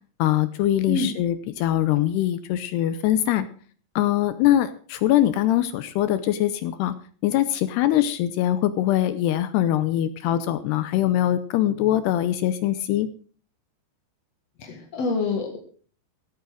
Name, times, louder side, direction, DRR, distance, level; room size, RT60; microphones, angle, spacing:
voice 1, 0.2-3.5 4.0-6.9 7.2-13.1, left 12 dB, 80° left, 13 dB, 2.5 m, -22 dB
voice 2, 14.6-15.6, left 3 dB, 50° left, 3 dB, 2.1 m, -26 dB
16.5 x 8.6 x 6.3 m, 0.43 s
omnidirectional pair, 5.3 m